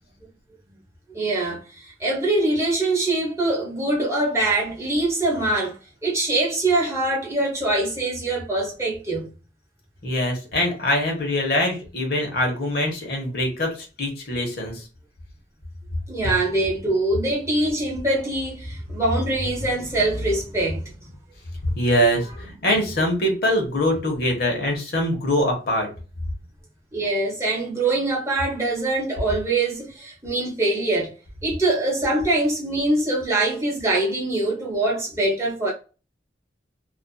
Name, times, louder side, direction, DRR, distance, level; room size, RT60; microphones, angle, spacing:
voice 1, 1.1-9.3 16.1-20.8 26.9-31.1 31.4-35.7, right 2 dB, 15° right, 0.8 m, -23 dB
voice 2, 10.0-13.7 14.0-14.8 21.7-25.9, equal, 60° left, 0.9 m, -23 dB
2.6 x 2.4 x 2.2 m
head